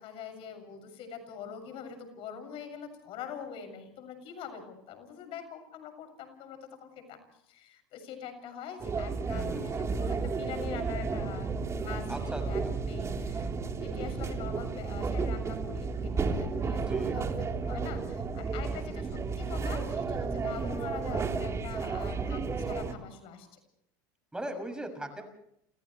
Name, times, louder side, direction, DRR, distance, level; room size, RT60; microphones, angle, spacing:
voice 1, 0.0-7.2 7.5-23.5, left 7 dB, 55° left, 6 dB, 7.1 m, -44 dB
sound 1, 8.8-22.9, right 4 dB, 25° right, 3.7 m, -32 dB
voice 2, 9.3-9.9 12.1-12.7 16.8-17.2 24.3-25.2, right 1 dB, 5° right, 5 dB, 6.8 m, -39 dB
30.0 x 28.0 x 3.3 m, 0.76 s
supercardioid pair, 105°, 11 cm